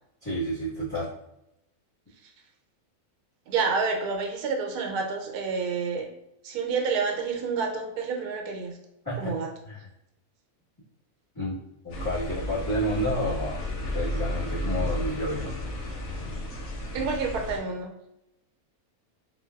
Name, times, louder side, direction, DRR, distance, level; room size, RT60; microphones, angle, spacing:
voice 1, 0.2-1.1 9.0-9.3 9.7-9.8 11.3-11.5 11.8-13.6 13.9-15.5, equal, 15° left, -12 dB, 1.1 m, -30 dB
voice 2, 3.5-6.1 6.4-8.8 9.2-9.5 16.9-17.9, right 5 dB, 90° right, 2 dB, 1.1 m, -29 dB
sound 1, 11.9-17.6, equal, 70° left, 1.1 m, -32 dB
3.8 x 2.5 x 2.3 m, 0.86 s
omnidirectional pair, 1.6 m